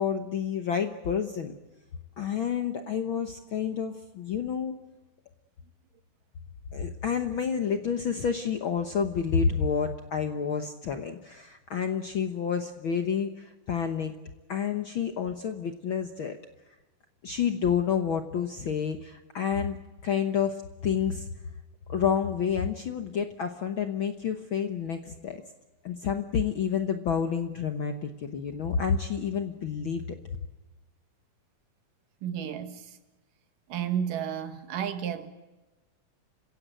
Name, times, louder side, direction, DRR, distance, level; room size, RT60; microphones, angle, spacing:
voice 1, 0.0-1.5 2.2-4.8 6.7-14.1 14.5-16.4 17.2-21.3 21.9-25.4 25.8-30.2, left 7 dB, 60° left, 1.3 m, -29 dB
voice 2, 32.2-32.8 33.7-35.3, right 9 dB, 80° right, 3.2 m, -32 dB
29.0 x 16.5 x 9.1 m
omnidirectional pair, 3.7 m